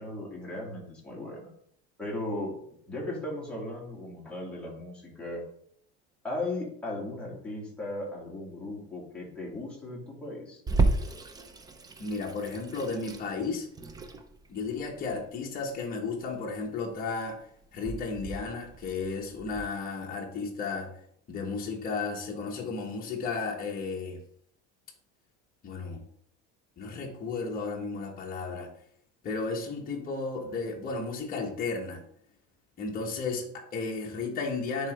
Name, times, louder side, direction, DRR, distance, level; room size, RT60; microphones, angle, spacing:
voice 1, 0.0-1.5 2.0-2.5 2.9-5.4 6.2-10.6, left 2 dB, 5° left, -5 dB, 2.2 m, -37 dB
Water tap faucet / Sink (filling or washing), 10.7-19.7, right 3 dB, 15° right, 0.4 m, -33 dB
voice 2, 12.0-13.7 14.5-17.4 17.7-20.9 21.3-24.2 25.6-26.0 26.8-28.7 29.2-32.0 32.8-34.9, left 4 dB, 30° left, -1 dB, 1.2 m, -33 dB
10.0 x 3.9 x 3.4 m, 0.65 s
cardioid pair, 165°, 31 cm